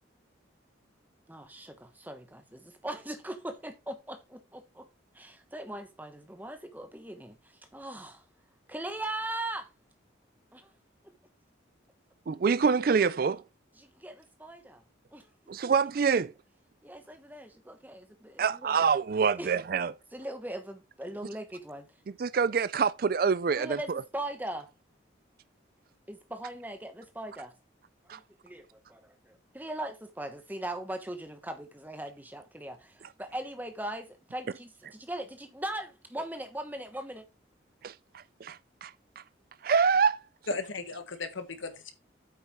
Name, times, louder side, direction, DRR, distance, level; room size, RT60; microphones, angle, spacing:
voice 1, 1.3-4.9 5.1-8.2 8.7-9.7 10.5-10.7 13.8-14.8 15.1-15.3 16.8-18.7 19.4-19.5 20.1-21.9 23.5-24.7 26.1-27.5 28.1-37.2, right 1 dB, 10° right, 1.1 m, -40 dB
voice 2, 12.3-13.4 15.5-16.3 18.4-19.9 22.2-24.0 28.1-28.2 37.8-38.9 39.6-40.2, right 6 dB, 50° right, 0.3 m, -26 dB
voice 3, 40.5-41.9, left 3 dB, 80° left, 1.5 m, -36 dB
8.5 x 5.6 x 4.4 m
head